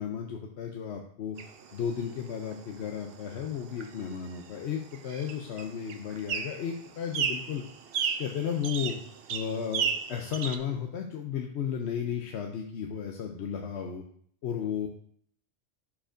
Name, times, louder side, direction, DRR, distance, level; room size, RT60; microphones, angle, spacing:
voice 1, 0.0-1.4 1.7-7.6 8.2-9.0 9.3-14.0 14.4-14.9, left 8 dB, 70° left, 3 dB, 0.9 m, -34 dB
sound 1, 1.4-10.6, right 7 dB, 60° right, 0.7 m, -36 dB
11.0 x 4.8 x 2.6 m, 0.62 s
omnidirectional pair, 1.2 m